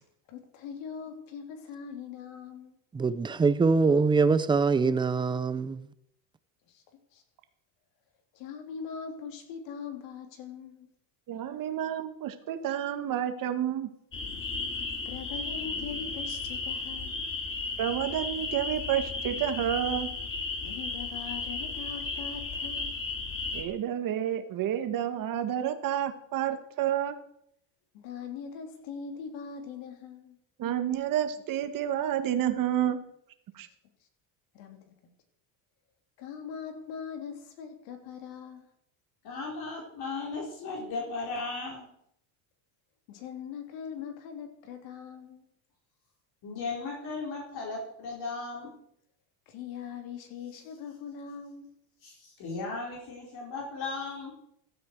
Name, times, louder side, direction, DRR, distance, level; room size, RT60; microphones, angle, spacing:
voice 1, 0.3-2.8 6.7-6.8 7.1-7.2 8.3-10.9 15.0-17.2 20.6-23.0 27.9-30.4 34.5-35.1 36.2-38.7 43.1-45.4 49.5-51.7, left 6 dB, 70° left, 3.5 m, -41 dB
voice 2, 2.9-5.9, right 4 dB, 10° right, 0.5 m, -24 dB
voice 3, 11.3-13.9 17.8-20.1 23.5-27.1 30.6-33.0 33.5-33.7, right 10 dB, 45° right, 1.7 m, -30 dB
sound 1, 14.1-23.6, left 3 dB, 25° left, 3.0 m, -34 dB
voice 4, 39.2-41.9 46.4-48.8 52.0-54.3, left 3 dB, 50° left, 4.6 m, -36 dB
16.0 x 12.5 x 4.7 m
cardioid pair, 140°, 46 cm